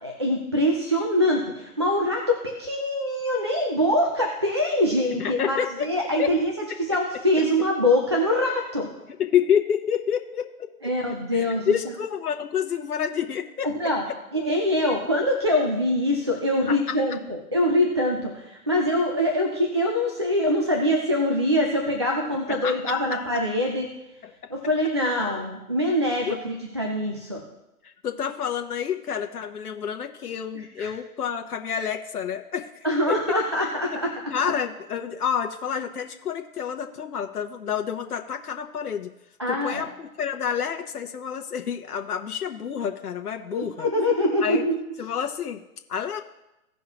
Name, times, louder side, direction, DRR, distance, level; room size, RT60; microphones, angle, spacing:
voice 1, 0.0-8.9 10.8-11.7 13.6-14.0 14.3-23.9 24.5-27.4 30.8-30.9 32.8-34.1 39.4-39.8 43.5-44.8, left 1 dB, 20° right, 0 dB, 0.4 m, -24 dB
voice 2, 5.2-5.9 6.2-6.3 9.2-10.5 11.3-13.7 16.7-17.0 22.5-22.9 24.2-24.3 26.3-26.4 27.8-32.7 33.1-33.2 33.9-34.0 34.3-39.1 39.5-43.9 44.4-44.7 45.0-45.6 45.9-46.2, left 8 dB, 80° left, 4 dB, 1.0 m, -28 dB
16.5 x 5.6 x 2.9 m, 0.92 s
hypercardioid pair, 155°, 44 cm